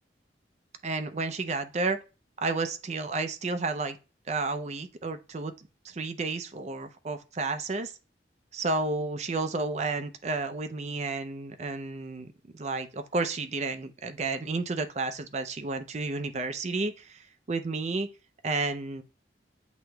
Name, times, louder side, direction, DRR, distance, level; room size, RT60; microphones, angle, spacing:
voice 1, 0.8-2.0 2.4-4.0 4.3-7.9 8.5-18.1 18.4-19.0, right 3 dB, 40° right, 0.5 m, -31 dB
8.0 x 2.9 x 2.2 m
head